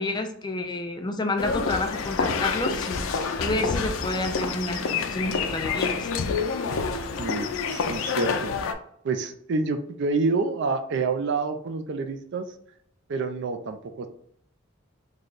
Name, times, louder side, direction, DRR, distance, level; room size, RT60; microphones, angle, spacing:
voice 1, 0.0-3.1 3.4-6.1, left 2 dB, 20° left, 5 dB, 0.4 m, -29 dB
sound 1, 1.4-8.7, left 5 dB, 85° left, 0.4 m, -28 dB
voice 2, 7.2-8.7 9.0-12.5 13.1-14.1, right 4 dB, 60° right, 8 dB, 0.4 m, -28 dB
3.2 x 2.2 x 3.9 m, 0.68 s
head